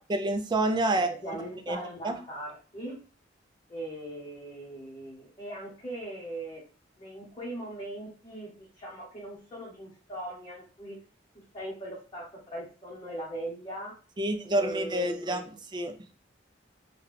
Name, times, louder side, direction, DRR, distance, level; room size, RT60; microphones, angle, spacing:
voice 1, 0.1-1.4 1.7-1.8 2.0-2.2 14.2-15.9, right 1 dB, 25° right, 7 dB, 0.4 m, -28 dB
voice 2, 0.9-3.0 3.7-6.6 7.0-11.0 11.5-13.9 14.4-15.5, right 1 dB, 25° left, -5 dB, 0.9 m, -40 dB
3.5 x 2.2 x 3.2 m, 0.36 s
head